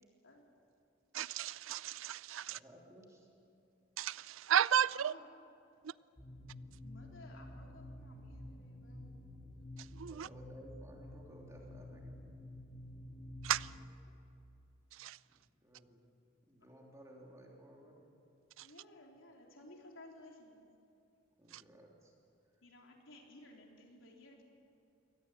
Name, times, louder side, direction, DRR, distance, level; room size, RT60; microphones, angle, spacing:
voice 1, 1.1-2.6 4.0-5.1 5.8-5.9 9.9-10.3 13.4-13.7 14.9-15.2 18.6-18.7 21.5-21.6, right 9 dB, 90° right, 0.4 m, -34 dB
voice 2, 2.5-3.3 9.9-12.2 15.3-16.0 16.5-18.1 21.4-22.1, equal, 15° right, 3.1 m, -57 dB
voice 3, 4.9-5.3 6.8-9.1 13.6-13.8 18.6-20.7 22.6-24.4, left 2 dB, 85° left, 3.9 m, -57 dB
sound 1, 6.2-13.8, left 1 dB, 15° left, 4.0 m, -50 dB
24.0 x 18.0 x 8.4 m
head